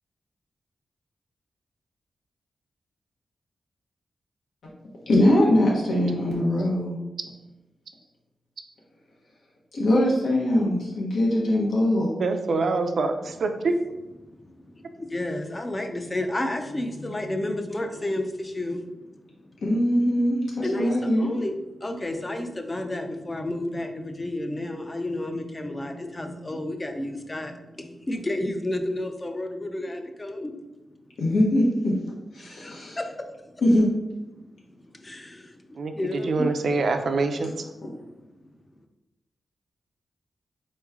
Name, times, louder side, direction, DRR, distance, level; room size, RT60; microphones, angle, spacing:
voice 1, 5.1-7.0 9.7-12.1 19.6-21.3 31.2-31.9 32.3-33.0 33.6-33.8, left 1 dB, 85° left, -4 dB, 1.0 m, -22 dB
voice 2, 12.2-13.8 35.8-37.5, right 3 dB, 55° right, 6 dB, 0.4 m, -25 dB
voice 3, 15.0-18.9 20.6-21.5 21.8-30.6 32.4-33.3 35.0-35.5 36.0-36.3, left 1 dB, 20° left, 5 dB, 0.4 m, -31 dB
4.3 x 3.1 x 3.5 m, 0.99 s
wide cardioid pair, 170°, 0 cm